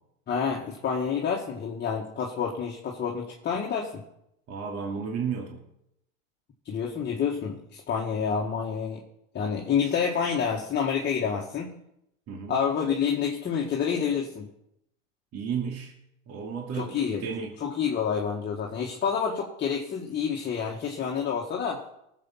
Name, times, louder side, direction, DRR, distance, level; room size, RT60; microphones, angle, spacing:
voice 1, 0.3-4.0 6.6-9.0 9.3-11.8 12.5-14.5 16.7-17.2 17.6-21.8, left 6 dB, 25° left, -1 dB, 1.8 m, -28 dB
voice 2, 4.5-5.6 12.3-12.5 15.3-15.9 16.3-17.6, right 6 dB, 40° right, 1 dB, 2.4 m, -33 dB
18.5 x 7.7 x 5.7 m, 0.80 s
hypercardioid pair, 100°, 39 cm